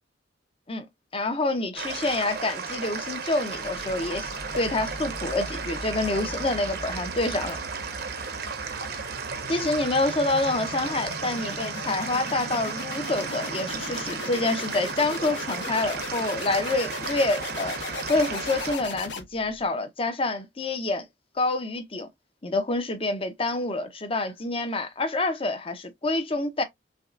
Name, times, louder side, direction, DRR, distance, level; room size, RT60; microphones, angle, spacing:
voice 1, 1.1-7.6 9.5-17.8 18.1-21.0 21.4-22.1 22.4-26.6, left 2 dB, 30° left, 0.9 m, -27 dB
sound 1, 1.8-18.8, right 5 dB, 60° right, 0.9 m, -34 dB
sound 2, 3.5-19.6, left 3 dB, 85° left, 1.1 m, -39 dB
6.2 x 2.4 x 2.5 m
head